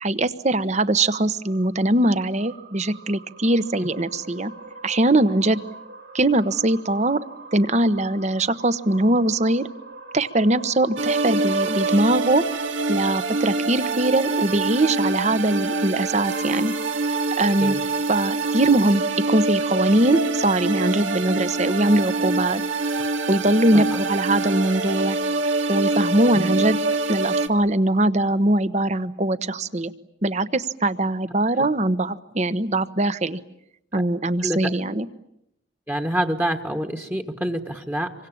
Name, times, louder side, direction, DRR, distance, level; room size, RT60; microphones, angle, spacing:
voice 1, 0.0-4.5 4.8-5.6 6.1-7.2 7.5-9.7 10.1-12.4 12.9-16.7 17.4-17.8 18.1-22.6 23.3-25.2 25.7-26.8 27.1-29.9 30.2-33.4 33.9-35.0, right 1 dB, 35° right, 13 dB, 1.1 m, -21 dB
sound 1, 1.4-13.9, right 2 dB, 70° right, 3.5 m, -43 dB
sound 2, 11.0-27.5, right 3 dB, 90° right, 2.3 m, -25 dB
voice 2, 35.9-38.1, right 1 dB, 10° right, 4 dB, 1.4 m, -27 dB
27.0 x 24.5 x 8.7 m, 0.79 s
head